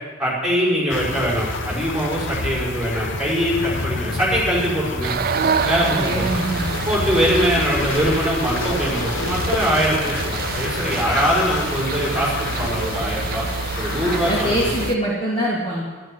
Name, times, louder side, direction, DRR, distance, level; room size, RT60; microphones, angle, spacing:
voice 1, 0.2-5.1 5.6-6.2 6.9-13.4 13.8-14.7, equal, 5° right, -6 dB, 5.5 m, -22 dB
sound 1, 0.9-14.9, left 3 dB, 60° left, 1.0 m, -28 dB
sound 2, 5.0-15.0, right 6 dB, 45° right, 0.4 m, -28 dB
voice 2, 5.8-6.7 14.0-15.8, equal, 25° left, -7 dB, 2.9 m, -24 dB
12.0 x 12.0 x 7.5 m, 1.3 s
head